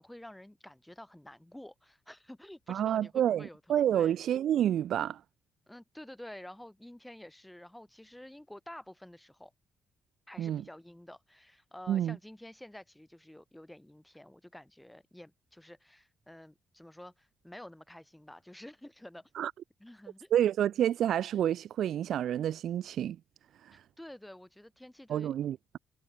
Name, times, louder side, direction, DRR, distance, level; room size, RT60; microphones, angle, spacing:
voice 1, 0.0-4.2 5.7-9.5 10.3-19.3 19.8-20.3 23.7-25.3, left 1 dB, 5° left, 7.1 m, -50 dB
voice 2, 2.7-5.2 10.4-10.6 11.9-12.2 19.4-19.5 20.3-23.2 25.1-25.8, right 10 dB, 70° right, 0.3 m, -29 dB
cardioid pair, 90°, 0 cm